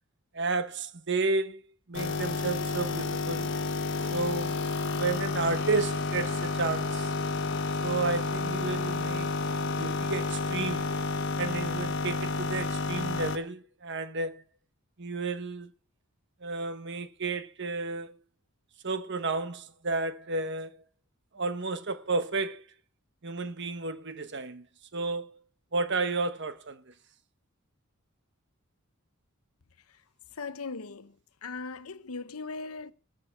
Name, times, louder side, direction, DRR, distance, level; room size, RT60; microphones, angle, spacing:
voice 1, 0.3-1.6 1.9-3.5 4.1-4.5 4.9-7.1 7.8-10.9 11.4-14.4 15.0-15.7 16.4-18.2 18.8-20.8 21.3-22.6 23.2-24.7 24.9-25.4 25.7-26.9, right 3 dB, 55° right, 1.2 m, -32 dB
sound 1, 1.9-13.4, left 3 dB, 55° left, 1.2 m, -30 dB
voice 2, 30.3-32.9, left 4 dB, 85° left, 1.0 m, -39 dB
19.5 x 6.7 x 5.9 m
head